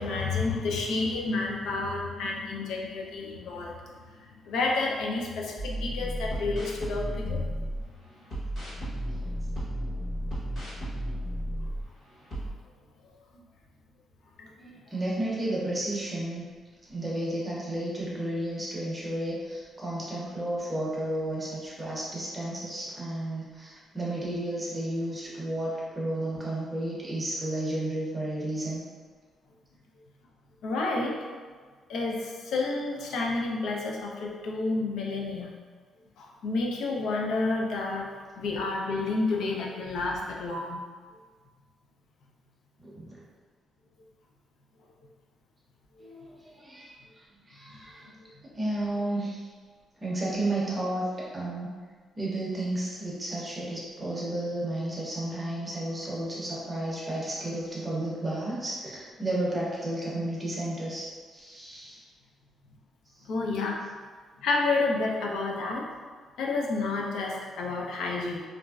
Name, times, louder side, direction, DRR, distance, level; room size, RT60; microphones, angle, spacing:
voice 1, 0.0-3.8 4.5-7.5 14.4-14.8 30.6-31.1 31.9-35.5 36.2-38.1 38.4-40.8 63.3-63.8 64.4-65.9 66.4-68.4, left 3 dB, 80° left, -1 dB, 0.4 m, -30 dB
sound 1, 5.6-7.8 8.3-11.8 12.3-12.5, equal, 45° left, 0.9 m, -33 dB
voice 2, 14.9-16.5 16.9-28.8 42.8-43.2 46.0-48.1 48.5-49.5 50.0-51.0 51.3-51.7 52.2-62.0, right 1 dB, 15° right, -6 dB, 0.6 m, -32 dB
3.0 x 2.4 x 2.3 m, 1.5 s
cardioid pair, 175°, 0 cm